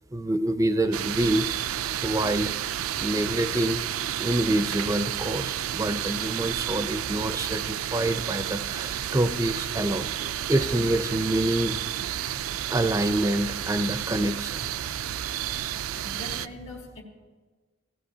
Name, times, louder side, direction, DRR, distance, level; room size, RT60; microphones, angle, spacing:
voice 1, 0.1-1.6 2.0-2.5 3.0-3.8 4.2-10.1 10.5-11.8 12.7-14.7, right 1 dB, 15° right, 10 dB, 0.4 m, -26 dB
sound 1, 0.9-16.5, right 11 dB, 90° right, 0.4 m, -31 dB
voice 2, 16.0-17.0, left 1 dB, 70° left, -4 dB, 2.0 m, -41 dB
16.5 x 14.5 x 2.7 m, 1.4 s
head